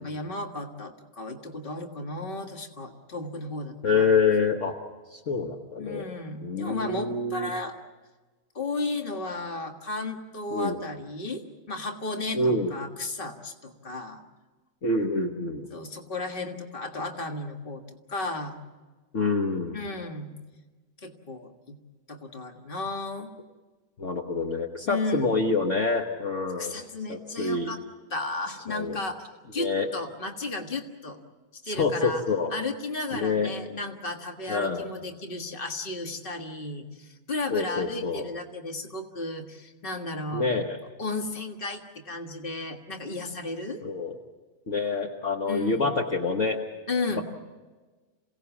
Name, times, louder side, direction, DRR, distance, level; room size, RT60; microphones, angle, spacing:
voice 1, 0.0-4.1 5.8-7.8 8.6-14.2 15.7-17.8 18.1-18.6 19.7-20.3 21.0-21.8 22.1-23.3 24.9-25.3 26.6-27.8 28.1-29.2 29.5-31.2 31.7-32.2 32.5-40.5 41.0-43.8 45.5-45.9 46.9-47.2, left 2 dB, 35° left, 4 dB, 1.8 m, -34 dB
voice 2, 3.8-4.7 5.1-6.0 6.4-7.5 10.5-10.8 12.3-12.7 14.8-15.7 19.1-19.8 24.0-26.8 27.1-27.7 28.7-29.0 29.6-29.9 31.6-32.5 33.1-33.5 34.5-34.9 37.5-38.3 40.3-40.8 43.8-44.1 44.7-46.6, left 4 dB, 55° left, 1 dB, 1.6 m, -26 dB
27.5 x 17.5 x 7.2 m, 1.3 s
omnidirectional pair, 1.6 m